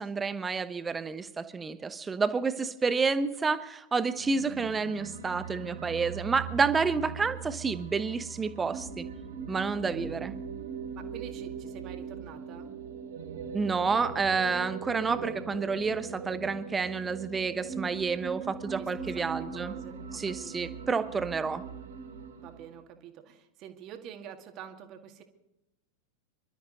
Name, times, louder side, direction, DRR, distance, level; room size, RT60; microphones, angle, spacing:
voice 1, 0.0-9.1 9.5-10.3 13.5-19.7 20.1-21.6, right 4 dB, 15° right, 12 dB, 1.0 m, -29 dB
sound 1, 4.1-22.7, right 6 dB, 65° right, 2.9 m, -40 dB
voice 2, 10.9-12.7 18.7-19.1 19.3-20.7 22.4-25.2, right 9 dB, 35° right, 5 dB, 2.0 m, -47 dB
26.5 x 12.5 x 4.0 m, 0.88 s
figure-of-eight pair, 90°, 0 cm